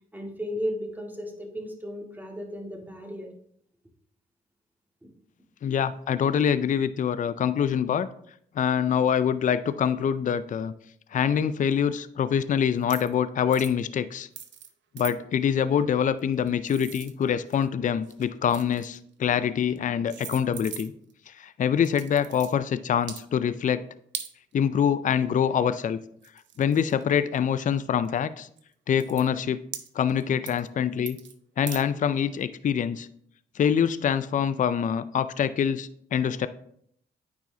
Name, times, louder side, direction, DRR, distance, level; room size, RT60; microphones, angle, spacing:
voice 1, 0.1-3.3, equal, 10° right, 0 dB, 1.9 m, -34 dB
voice 2, 5.6-8.1 8.6-10.7 11.1-14.3 14.9-20.9 21.3-23.8 24.5-26.0 26.6-28.5 28.9-29.6 29.9-31.2 31.6-33.1 33.6-36.5, left 8 dB, 45° left, 14 dB, 0.4 m, -25 dB
sound 1, 12.8-13.1 13.5-13.8 14.4-14.7 15.0-15.1 16.2-17.7 18.0-19.0 19.7-19.8 20.1-21.1 21.8-22.5 23.0-23.2 24.1-24.3 25.8-25.9 26.2-27.4 28.1-28.2 28.6-28.7 28.9-29.2 29.7-30.2 30.5-30.7 31.1-31.3 31.7-31.8, right 9 dB, 80° right, 0.7 m, -40 dB
9.2 x 4.7 x 2.8 m, 0.67 s
supercardioid pair, 60°, 19 cm